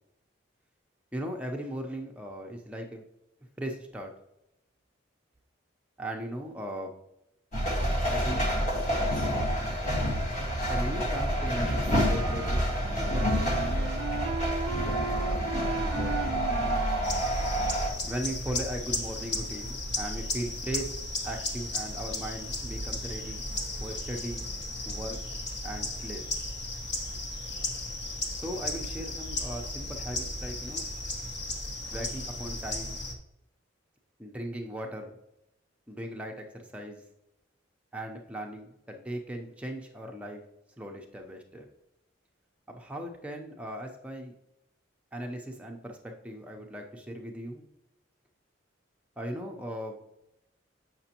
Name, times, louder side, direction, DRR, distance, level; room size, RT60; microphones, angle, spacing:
voice 1, 1.1-3.0 3.6-4.1 6.0-6.9 8.0-8.4 10.7-12.6 12.9-13.9 14.8-16.3 18.0-21.0 21.2-23.4 23.8-24.5 24.8-25.2 25.6-26.3 28.3-30.9 31.9-33.0 34.2-35.2 35.9-37.0 37.9-40.4 40.8-41.7 42.7-44.3 45.1-47.6 49.2-50.0, right 1 dB, 5° right, 1 dB, 0.6 m, -38 dB
sound 1, 7.5-17.9, equal, 35° left, 1.5 m, -28 dB
Wind instrument woodwind instrument, 12.0-17.9, right 5 dB, 75° right, 0.5 m, -37 dB
sound 2, 17.0-33.1, left 2 dB, 55° left, 1.0 m, -35 dB
7.8 x 5.9 x 2.9 m, 0.87 s
head